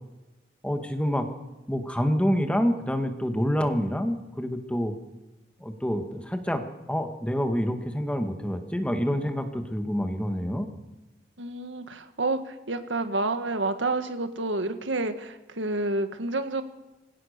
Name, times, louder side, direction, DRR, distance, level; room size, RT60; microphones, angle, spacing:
voice 1, 0.6-1.3 1.7-4.9 5.6-6.6 6.9-10.7, equal, 5° left, 6 dB, 1.7 m, -27 dB
voice 2, 11.4-16.6, right 2 dB, 85° right, 8 dB, 1.7 m, -29 dB
23.0 x 17.0 x 6.7 m, 1.0 s
head